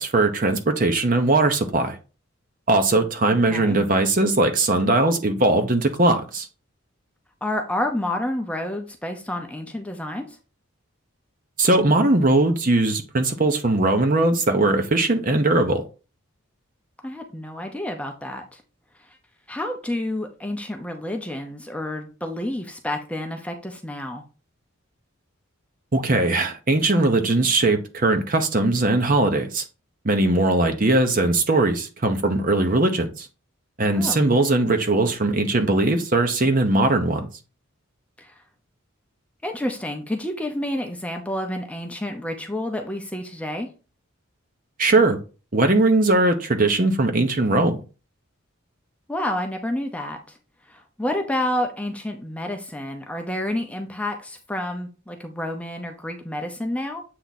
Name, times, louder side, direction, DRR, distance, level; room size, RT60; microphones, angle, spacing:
voice 1, 0.0-2.0 2.7-6.5 11.6-15.8 25.9-29.6 30.0-33.3 33.8-37.3 44.8-45.2 45.5-47.8, right 2 dB, 40° right, 0.9 m, -20 dB
voice 2, 3.3-3.8 7.4-10.4 17.0-18.6 19.5-24.2 33.9-34.2 38.2-38.3 39.4-43.7 49.1-50.4 50.7-57.0, left 1 dB, 5° left, 0.7 m, -29 dB
7.7 x 3.5 x 4.1 m
head